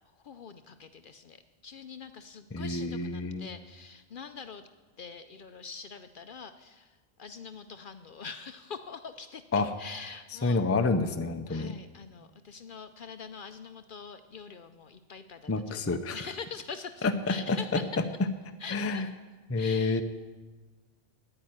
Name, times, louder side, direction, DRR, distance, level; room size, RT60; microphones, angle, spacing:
voice 1, 0.0-4.7 5.0-9.4 9.8-10.6 11.5-17.9 18.6-19.1 19.6-20.0, left 5 dB, 55° left, 10 dB, 0.7 m, -44 dB
voice 2, 2.5-3.5 9.5-9.7 10.4-11.7 15.5-16.2 17.0-18.0 18.7-19.1 19.5-20.0, left 3 dB, 20° left, 8 dB, 0.4 m, -28 dB
9.9 x 8.7 x 9.5 m, 1.3 s
omnidirectional pair, 1.2 m